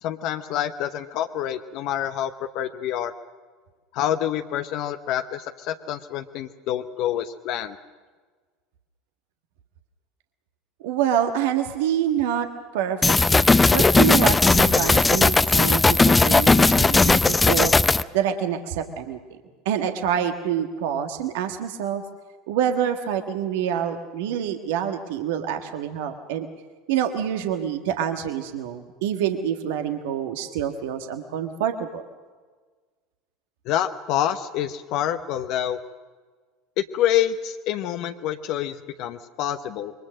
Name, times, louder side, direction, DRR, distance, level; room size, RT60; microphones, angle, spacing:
voice 1, 0.0-3.1 3.9-7.8 33.6-35.8 36.8-39.9, left 11 dB, 55° left, 7 dB, 1.0 m, -27 dB
voice 2, 10.8-12.5 12.7-17.7 18.1-19.2 19.6-22.0 22.5-26.5 26.9-32.0, right 9 dB, 65° right, 6 dB, 1.5 m, -26 dB
sound 1, 13.0-18.0, left 3 dB, 15° left, 0.6 m, -17 dB
26.5 x 23.0 x 6.4 m, 1.4 s
figure-of-eight pair, 70°, 0 cm